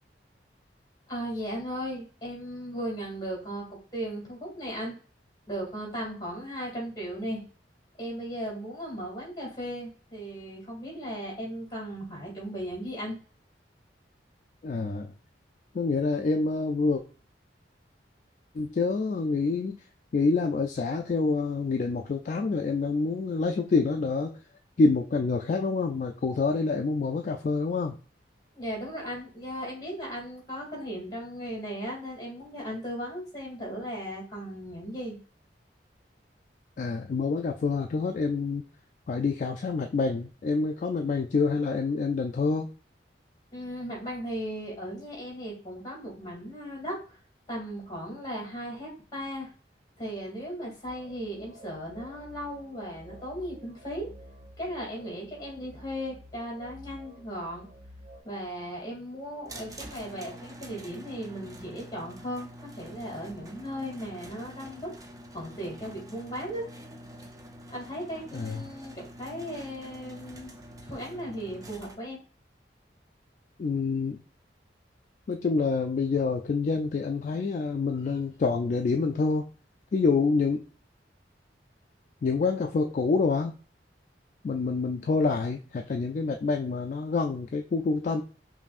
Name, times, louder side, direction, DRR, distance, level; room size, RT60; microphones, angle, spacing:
voice 1, 1.1-3.6 3.9-4.9 5.5-7.4 8.0-13.2 28.5-35.2 43.5-47.2 47.5-49.5 50.0-54.1 54.6-57.7 58.2-64.9 65.3-66.7 67.7-70.5 70.8-72.2, equal, 20° left, -3 dB, 2.1 m, -36 dB
voice 2, 14.6-15.1 15.7-17.0 18.5-19.8 20.1-24.3 24.8-28.0 36.8-38.6 39.1-42.7 68.3-68.6 73.6-74.2 75.3-79.4 79.9-80.7 82.2-83.5 84.4-88.2, left 4 dB, 45° left, 4 dB, 0.3 m, -27 dB
sound 1, 50.8-58.2, equal, 80° right, 1.3 m, -50 dB
sound 2, 59.5-71.9, right 1 dB, 20° right, 0.5 m, -46 dB
5.5 x 2.6 x 2.4 m, 0.38 s
head